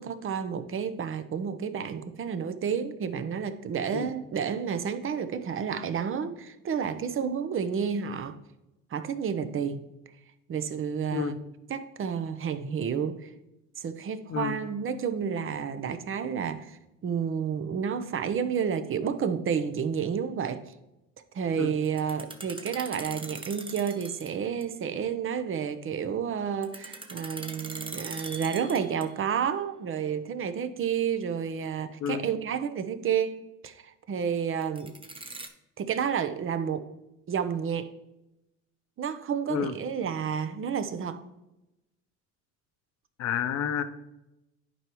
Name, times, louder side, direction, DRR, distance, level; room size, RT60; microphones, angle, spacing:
voice 1, 0.0-8.4 8.9-9.8 10.5-11.4 11.7-13.3 13.8-20.6 21.3-33.4 33.6-34.9 35.8-36.9 37.3-37.9 39.0-41.2, right 7 dB, 40° right, 10 dB, 0.8 m, -30 dB
sound 1, 21.8-24.3 24.6-24.7 26.6-29.3 34.6-35.5, right 2 dB, 15° right, 1.0 m, -41 dB
voice 2, 43.2-43.8, left 7 dB, 50° left, 9 dB, 0.8 m, -29 dB
11.0 x 4.7 x 3.1 m, 0.94 s
hypercardioid pair, 75°, 34 cm